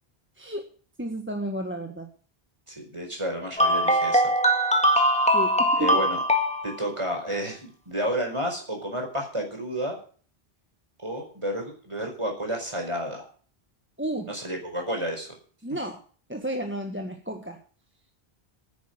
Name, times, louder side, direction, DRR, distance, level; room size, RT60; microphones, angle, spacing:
voice 1, 1.0-2.1 5.3-6.0 14.0-14.3 15.6-16.0 16.3-17.6, right 1 dB, 10° right, 3 dB, 1.6 m, -32 dB
voice 2, 2.7-4.3 5.8-6.2 6.6-10.0 11.0-13.2 14.3-15.3, equal, 30° right, 2 dB, 4.9 m, -31 dB
sound 1, 3.6-6.8, equal, 5° left, 1.7 m, -21 dB
10.5 x 9.6 x 9.0 m, 0.43 s
omnidirectional pair, 1.0 m